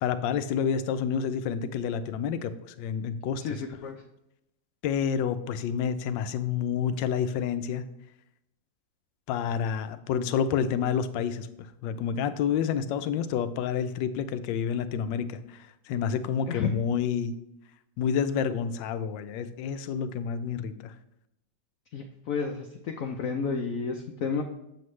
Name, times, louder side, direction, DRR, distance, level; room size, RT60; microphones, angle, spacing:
voice 1, 0.0-3.6 4.8-7.8 9.3-17.4 18.0-21.0, left 7 dB, 85° left, 12 dB, 1.3 m, -29 dB
voice 2, 3.4-4.0 16.5-16.7 21.9-24.4, left 5 dB, 65° left, 4 dB, 0.8 m, -31 dB
7.8 x 7.2 x 3.2 m, 0.83 s
omnidirectional pair, 2.0 m